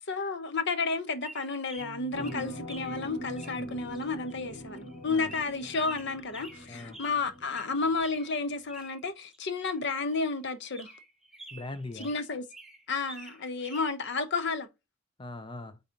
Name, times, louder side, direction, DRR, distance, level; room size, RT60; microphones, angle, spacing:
voice 1, 0.1-10.9 12.0-12.4 12.9-14.7, left 4 dB, 60° left, 1.0 m, -32 dB
sound 1, 1.2-3.1 3.4-8.4 8.7-9.8 10.1-10.2 10.7-12.2 12.5-13.9, right 2 dB, ahead, 1.1 m, -49 dB
Bass guitar, 1.8-8.0, right 1 dB, 75° left, 2.6 m, -55 dB
sound 2, 2.1-8.2 8.6-8.7, equal, 40° left, 1.6 m, -43 dB
voice 2, 6.7-7.0 11.5-12.1 15.2-15.8, left 2 dB, 25° left, 0.5 m, -41 dB
8.8 x 4.0 x 2.9 m
head